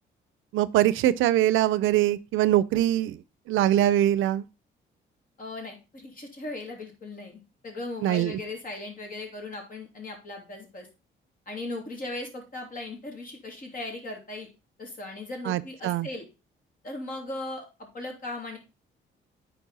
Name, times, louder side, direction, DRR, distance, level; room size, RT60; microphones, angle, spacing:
voice 1, 0.5-3.2 3.5-4.4 8.0-8.4 15.5-16.1, right 13 dB, 80° right, 0.5 m, -23 dB
voice 2, 5.4-10.9 11.5-14.5 14.8-16.2 16.8-17.7 17.9-18.6, left 2 dB, 45° left, 3.1 m, -38 dB
10.0 x 4.4 x 4.1 m
cardioid pair, 90°, 20 cm